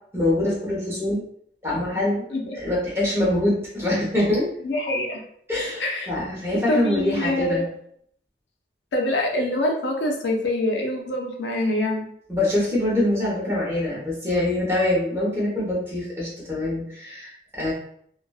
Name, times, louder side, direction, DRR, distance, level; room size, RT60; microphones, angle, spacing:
voice 1, 0.1-1.2 1.6-2.3 2.5-4.5 5.5-7.7 12.3-17.7, left 1 dB, 15° right, -6 dB, 0.9 m, -24 dB
voice 2, 4.6-5.2 5.8-6.1 6.7-7.7 8.9-12.0, left 1 dB, 80° left, 1 dB, 0.5 m, -25 dB
2.4 x 2.2 x 2.3 m, 0.67 s
head